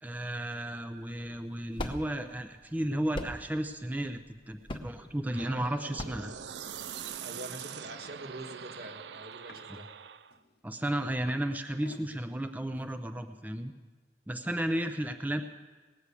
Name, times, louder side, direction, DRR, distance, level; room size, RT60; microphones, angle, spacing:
voice 1, 0.0-6.3 10.6-13.7 14.3-15.4, right 1 dB, 10° right, 7 dB, 0.5 m, -33 dB
sound 1, 1.0-7.2, left 1 dB, 30° left, 0.8 m, -41 dB
sound 2, 5.3-10.4, right 8 dB, 80° right, 0.5 m, -43 dB
sound 3, 7.2-7.4 7.6-8.1 9.3-9.8 10.3-11.5 11.7-12.1 12.8-12.9, left 3 dB, 65° left, 0.9 m, -53 dB
voice 2, 7.2-9.9, right 1 dB, 65° right, 4 dB, 1.4 m, -45 dB
19.0 x 6.4 x 8.3 m, 1.4 s
head